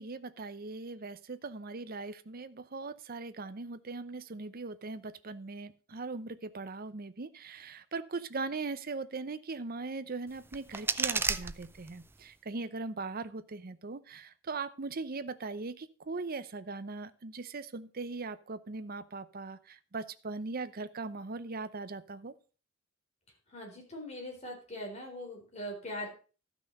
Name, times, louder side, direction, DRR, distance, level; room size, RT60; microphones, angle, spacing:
voice 1, 0.0-22.3, right 3 dB, 50° right, 13 dB, 0.7 m, -40 dB
sound 1, 10.3-12.3, right 4 dB, 10° right, 0.4 m, -34 dB
voice 2, 23.5-26.1, left 1 dB, 35° left, 1 dB, 3.9 m, -41 dB
13.0 x 6.1 x 5.3 m, 0.37 s
head